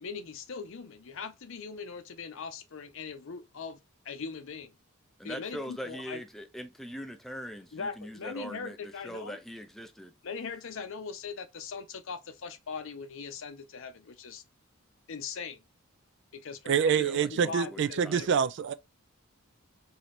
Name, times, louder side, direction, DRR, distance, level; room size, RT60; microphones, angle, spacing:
voice 1, 0.0-4.7 5.2-6.2 7.7-9.4 10.2-14.4 15.1-15.6 16.3-18.5, left 5 dB, 65° left, 0.6 m, -40 dB
voice 2, 5.2-10.1 17.0-18.3, equal, ahead, 0.5 m, -42 dB
voice 3, 16.7-18.7, right 7 dB, 55° right, 0.3 m, -26 dB
3.2 x 2.8 x 4.1 m
head